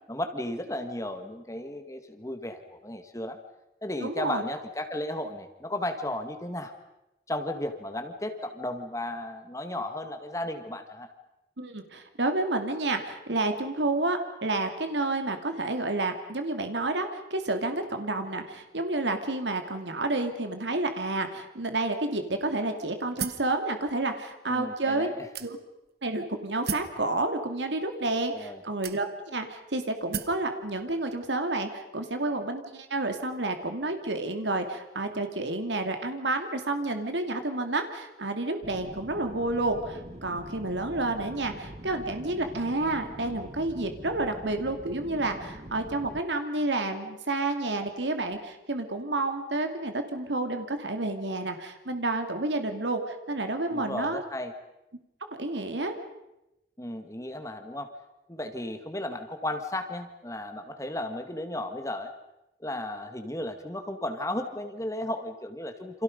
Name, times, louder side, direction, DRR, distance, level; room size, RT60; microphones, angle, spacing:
voice 1, 0.1-3.4 3.8-6.7 7.3-11.1 24.5-25.2 28.3-28.6 53.7-54.5 56.8-57.9 58.3-62.1 62.6-66.0, left 1 dB, 15° left, 7 dB, 1.8 m, -34 dB
voice 2, 4.0-4.4 11.6-25.1 25.4-25.6 26.0-54.2 55.4-55.9, right 2 dB, 80° right, 6 dB, 2.5 m, -30 dB
sound 1, 23.2-23.5 24.3-24.4 25.3-25.9 26.7-27.0 27.9-28.0 28.8-29.4 30.1-30.4, right 6 dB, 60° right, 1.3 m, -35 dB
sound 2, 38.6-46.2, right 1 dB, 35° right, 1.3 m, -44 dB
29.0 x 27.5 x 5.3 m, 0.91 s
head